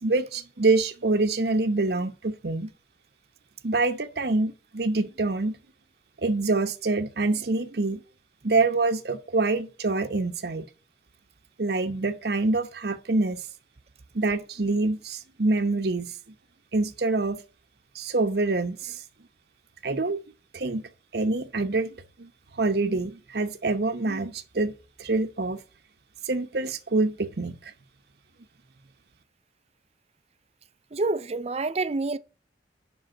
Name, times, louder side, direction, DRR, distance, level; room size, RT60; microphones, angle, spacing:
voice 1, 0.0-2.7 3.6-5.6 6.2-8.0 8.4-10.6 11.6-13.4 14.1-16.1 16.7-17.4 17.9-19.0 19.8-20.2 20.5-20.8 21.1-24.7 25.0-25.6 26.2-27.7, right 3 dB, 65° right, 0.9 m, -26 dB
voice 2, 30.9-32.2, right 3 dB, 35° right, 0.5 m, -27 dB
7.7 x 5.6 x 7.5 m
head